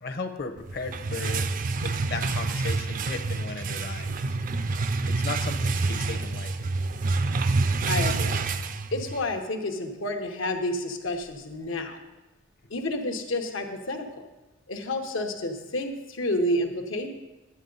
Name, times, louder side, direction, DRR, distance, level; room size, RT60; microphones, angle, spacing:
voice 1, 0.0-1.5 1.8-4.3 5.1-6.7, left 3 dB, 55° left, 7 dB, 0.8 m, -36 dB
sound 1, 0.7-9.3, right 3 dB, 45° right, 0.4 m, -27 dB
voice 2, 7.9-8.4 8.9-12.0 12.7-14.2 14.7-17.1, left 1 dB, 85° left, 4 dB, 1.0 m, -30 dB
11.0 x 8.6 x 3.9 m, 1.1 s
head